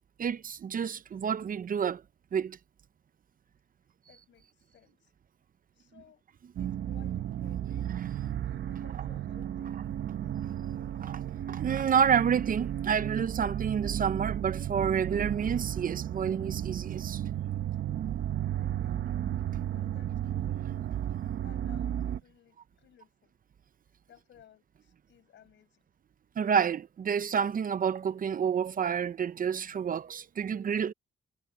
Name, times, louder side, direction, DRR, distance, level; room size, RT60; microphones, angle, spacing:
voice 1, 0.2-2.0 2.3-2.6 11.0-11.2 11.5-17.2 26.4-30.9, right 7 dB, 45° right, 0.8 m, -29 dB
voice 2, 4.1-5.1 5.7-6.2 6.6-7.9 8.3-9.7 18.6-19.0 19.7-20.1 20.4-21.1 21.4-23.3 23.9-25.9, left 10 dB, 70° left, 6.7 m, -60 dB
sound 1, 6.6-22.2, right 11 dB, 65° right, 1.4 m, -33 dB
cardioid pair, 90°, 20 cm